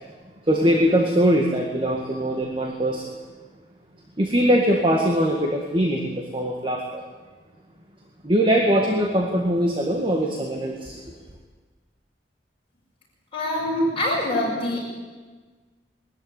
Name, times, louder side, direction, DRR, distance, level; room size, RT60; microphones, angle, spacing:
voice 1, 0.5-3.0 4.2-7.0 8.2-11.0, equal, 30° right, 1 dB, 1.9 m, -21 dB
voice 2, 13.3-14.8, left 1 dB, 30° left, -9 dB, 7.0 m, -24 dB
21.5 x 14.0 x 9.9 m, 1.4 s
head